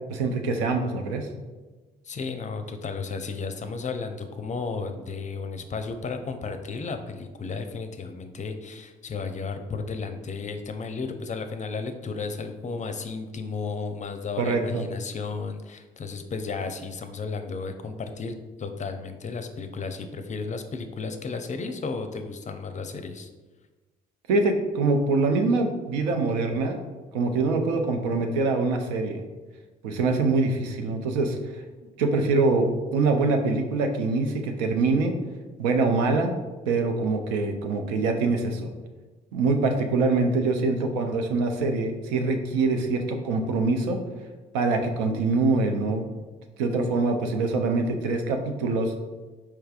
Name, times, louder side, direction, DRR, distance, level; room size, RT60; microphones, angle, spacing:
voice 1, 0.1-1.3 14.4-14.8 24.3-26.8 27.1-29.2 29.8-31.4 32.0-35.1 35.6-36.4 36.7-38.7 39.3-44.0 44.5-46.0 46.6-48.9, right 3 dB, 90° right, 5 dB, 0.4 m, -24 dB
voice 2, 2.0-23.3, left 4 dB, 35° left, 7 dB, 0.5 m, -33 dB
4.5 x 3.3 x 2.4 m, 1.3 s
hypercardioid pair, 50°, 21 cm